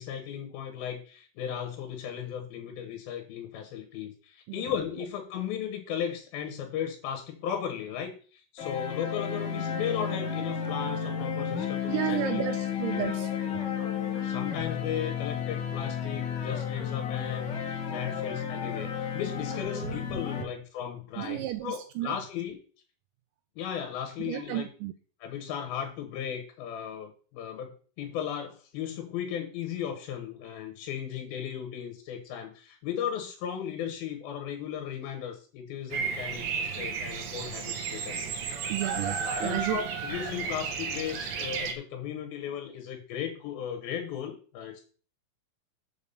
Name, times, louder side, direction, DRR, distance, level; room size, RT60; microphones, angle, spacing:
voice 1, 0.0-12.4 12.9-13.2 13.5-13.7 14.2-22.6 23.6-24.7 25.2-38.3 39.2-44.8, left 9 dB, 90° left, 6 dB, 3.0 m, -36 dB
sound 1, 8.6-20.4, left 7 dB, 50° left, 1.3 m, -32 dB
voice 2, 11.9-13.3 13.5-13.6 21.2-22.2 24.2-24.9 38.7-39.8, right 14 dB, 80° right, 10 dB, 2.0 m, -32 dB
Bird vocalization bird call bird song, 35.9-41.7, right 6 dB, 65° right, 1.8 m, -33 dB
6.0 x 5.4 x 6.9 m, 0.40 s
omnidirectional pair, 4.2 m